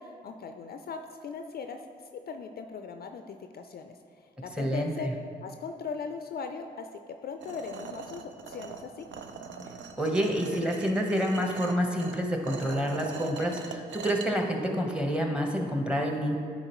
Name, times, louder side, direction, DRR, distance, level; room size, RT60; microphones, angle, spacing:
voice 1, 0.0-1.8 2.1-4.0 4.4-5.1 5.4-9.1, left 5 dB, 50° left, 6 dB, 0.4 m, -39 dB
voice 2, 4.5-5.1 10.0-16.4, equal, 5° right, 2 dB, 1.1 m, -28 dB
sound 1, 7.4-14.3, right 5 dB, 70° right, 0.5 m, -42 dB
9.7 x 3.9 x 3.1 m, 2.3 s
hypercardioid pair, 40°, 20 cm